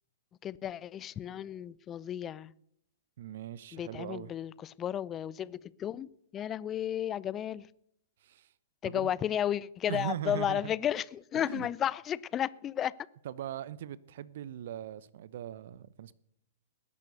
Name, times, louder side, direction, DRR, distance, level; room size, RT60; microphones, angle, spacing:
voice 1, 0.4-2.5 3.7-7.7 8.8-12.9, left 10 dB, 25° left, 0.5 m, -33 dB
voice 2, 3.2-4.3 8.2-8.5 8.8-9.1 9.9-10.7 11.3-11.7 13.2-16.1, right 11 dB, 55° right, 0.8 m, -40 dB
19.5 x 11.0 x 6.7 m
figure-of-eight pair, 110°, 0 cm